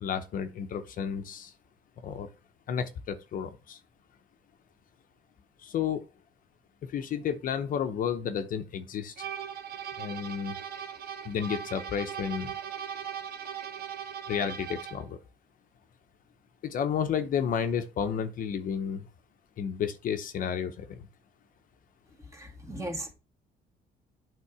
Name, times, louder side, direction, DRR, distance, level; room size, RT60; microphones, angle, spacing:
voice 1, 0.0-1.5 2.0-2.3 2.7-3.8 5.6-6.0 6.9-9.3 10.0-10.6 11.2-12.5 14.3-15.2 16.6-19.1 19.6-21.0, left 7 dB, 55° left, 0.8 m, -31 dB
sound 1, 9.2-15.1, right 8 dB, 65° right, 1.1 m, -39 dB
voice 2, 22.2-23.1, right 1 dB, 20° right, 2.1 m, -38 dB
8.4 x 3.7 x 4.8 m
cardioid pair, 110°, 17 cm